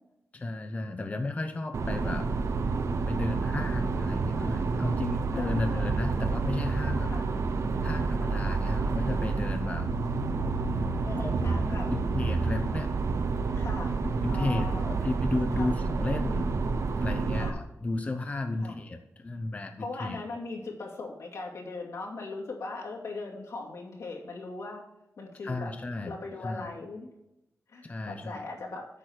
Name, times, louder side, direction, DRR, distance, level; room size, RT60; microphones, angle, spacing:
voice 1, 0.3-2.3 3.1-7.1 7.8-9.9 11.2-11.3 11.7-12.9 14.0-16.5 17.0-20.2 25.4-26.2 26.4-26.7 27.8-28.4, left 2 dB, 25° left, 6 dB, 0.6 m, -33 dB
sound 1, 1.7-17.5, right 4 dB, 70° right, 0.7 m, -29 dB
voice 2, 5.3-5.9 7.0-7.3 10.8-11.9 13.6-14.0 14.3-15.0 15.6-15.8 17.3-17.6 18.6-18.7 19.8-24.8 25.2-25.7 26.0-27.1 27.7-28.9, left 3 dB, 80° left, -2 dB, 2.5 m, -39 dB
8.5 x 6.1 x 6.5 m, 0.89 s
wide cardioid pair, 155°, 5 cm